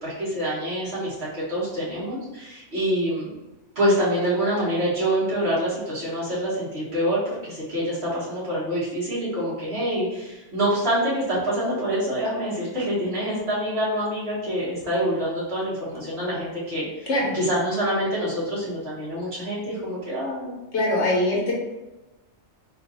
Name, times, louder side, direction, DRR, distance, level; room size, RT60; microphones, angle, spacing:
voice 1, 0.0-3.3 3.8-17.1 17.3-20.5, equal, 55° right, -9 dB, 1.9 m, -26 dB
voice 2, 20.7-21.5, left 1 dB, 65° left, -4 dB, 1.3 m, -22 dB
3.8 x 2.6 x 4.0 m, 1.0 s
omnidirectional pair, 1.3 m